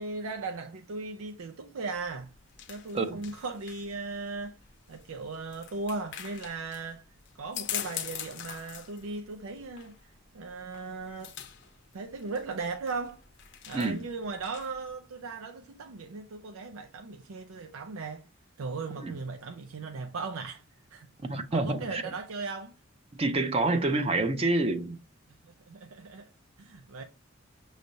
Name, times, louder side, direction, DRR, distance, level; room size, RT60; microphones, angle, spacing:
voice 1, 0.0-2.3 2.7-4.6 4.9-7.0 7.3-10.0 10.3-11.3 11.9-13.2 13.7-18.2 18.6-20.6 20.9-21.1 21.3-22.7 25.4-26.3 26.6-27.0, right 3 dB, 90° right, 0.5 m, -37 dB
sound 1, 1.9-14.9, left 10 dB, 60° left, 0.6 m, -43 dB
voice 2, 13.7-14.0 19.0-19.1 21.2-22.0 23.2-25.0, right 2 dB, 30° right, 0.5 m, -27 dB
6.3 x 3.2 x 2.7 m
head